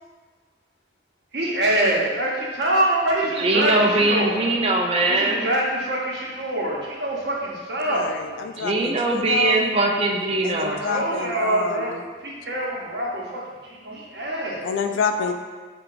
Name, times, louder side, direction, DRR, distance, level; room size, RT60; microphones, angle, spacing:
voice 1, 1.3-4.5 5.1-8.1 10.7-11.9 12.2-14.7, right 1 dB, 60° right, -3 dB, 0.8 m, -25 dB
voice 2, 3.4-5.5 8.6-10.8, right 2 dB, 30° right, 1 dB, 0.3 m, -21 dB
voice 3, 7.8-9.7 10.4-12.0 14.6-15.3, left 5 dB, 85° left, 6 dB, 0.3 m, -28 dB
4.4 x 2.3 x 3.8 m, 1.4 s
head